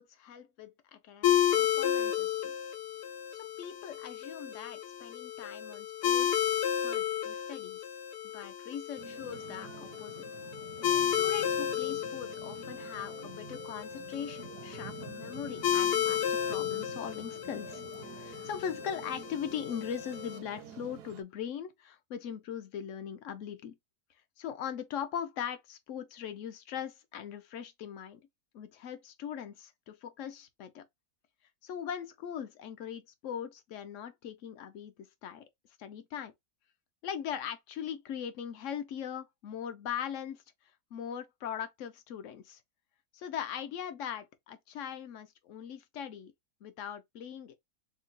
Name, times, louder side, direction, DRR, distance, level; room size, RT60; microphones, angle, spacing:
voice 1, 0.0-2.5 3.3-6.4 6.8-7.8 8.3-10.3 11.1-17.8 18.1-23.8 24.4-28.2 28.5-30.8 31.6-35.4 35.8-36.3 37.0-40.4 40.9-42.6 43.1-46.3 46.6-47.5, left 8 dB, 65° left, 0.9 m, -40 dB
sound 1, 1.2-20.4, left 10 dB, 80° left, 1.2 m, -33 dB
sound 2, 9.0-21.2, right 9 dB, 80° right, 1.1 m, -49 dB
3.7 x 2.2 x 3.9 m
omnidirectional pair, 1.7 m